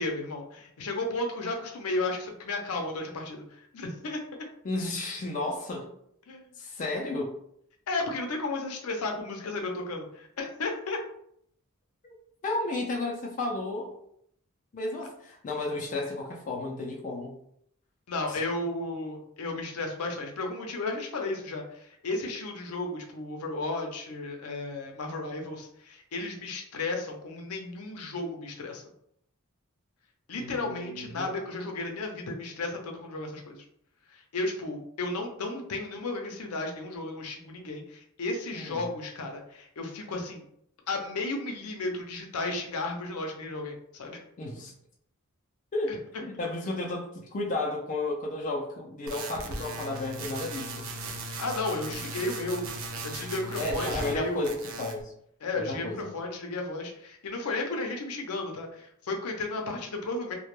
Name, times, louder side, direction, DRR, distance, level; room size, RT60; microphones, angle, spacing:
voice 1, 0.0-3.4 3.7-4.2 6.3-6.5 7.9-11.0 18.1-28.8 30.3-33.6 34.1-40.4 40.9-44.2 51.2-52.7 53.0-54.5 55.4-60.3, left 2 dB, 85° left, 2 dB, 0.5 m, -34 dB
voice 2, 4.6-5.9 6.6-7.3 12.0-12.1 12.4-14.0 14.7-17.3 18.3-18.4 30.4-31.3 38.5-38.9 44.4-44.7 45.7-50.9 53.5-55.1 55.5-56.1, left 2 dB, 35° left, 0 dB, 0.3 m, -33 dB
sound 1, 49.1-54.2 54.4-55.0, right 2 dB, 60° right, 0.4 m, -37 dB
2.1 x 2.1 x 3.0 m, 0.70 s
head